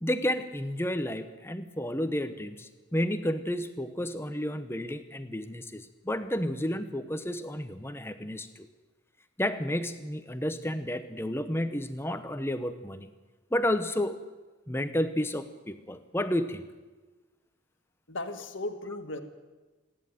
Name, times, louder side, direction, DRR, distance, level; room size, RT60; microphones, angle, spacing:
voice 1, 0.0-8.7 9.4-13.1 13.5-14.2 14.7-16.6, left 1 dB, 10° left, 10 dB, 0.9 m, -31 dB
voice 2, 18.1-19.2, left 2 dB, 70° left, 6 dB, 1.8 m, -36 dB
27.5 x 11.0 x 9.2 m, 1.3 s
head